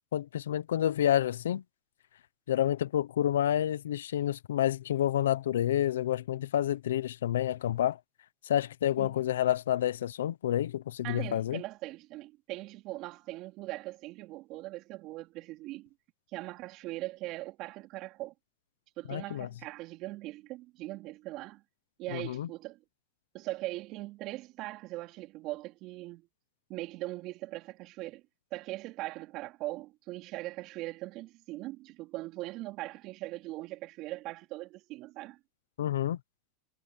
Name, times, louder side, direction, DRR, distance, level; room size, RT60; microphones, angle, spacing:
voice 1, 0.1-1.6 2.5-8.0 8.5-11.6 19.1-19.5 22.1-22.5 35.8-36.2, left 11 dB, 90° left, 0.9 m, -29 dB
voice 2, 11.0-15.9 16.3-18.3 19.0-21.6 22.0-22.8 23.3-26.3 26.7-28.2 28.5-35.4, right 18 dB, 50° right, 3.2 m, -40 dB
supercardioid pair, 120°, 0 cm